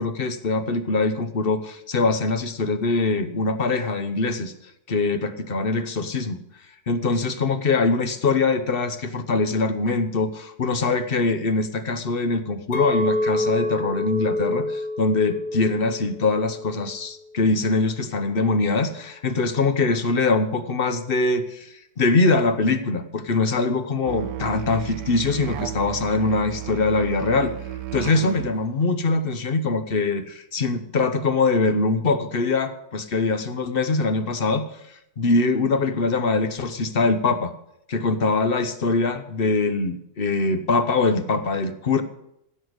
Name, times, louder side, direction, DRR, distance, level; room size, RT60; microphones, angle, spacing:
voice 1, 0.0-4.5 4.9-6.4 6.9-27.6 27.9-37.5 37.9-42.0, left 3 dB, 40° left, 10 dB, 1.0 m, -23 dB
Chink clink, 12.7-17.1 17.4-17.8, left 2 dB, 90° left, 1.8 m, -28 dB
Musical instrument, 24.1-28.6, right 13 dB, 85° right, 1.2 m, -33 dB
15.5 x 6.6 x 7.9 m, 0.80 s
omnidirectional pair, 1.7 m